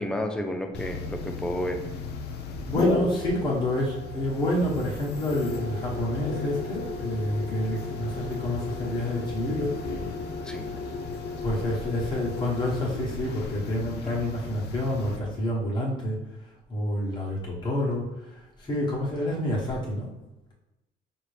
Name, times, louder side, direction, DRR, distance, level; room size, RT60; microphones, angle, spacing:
voice 1, 0.0-1.8 10.4-10.6, left 1 dB, 5° left, 4 dB, 0.4 m, -31 dB
sound 1, 0.7-15.2, left 3 dB, 80° left, 0.6 m, -34 dB
voice 2, 2.6-9.7 11.4-16.2 16.7-20.1, left 1 dB, 25° left, -5 dB, 1.2 m, -28 dB
5.5 x 2.6 x 3.2 m, 0.98 s
cardioid pair, 165°, 17 cm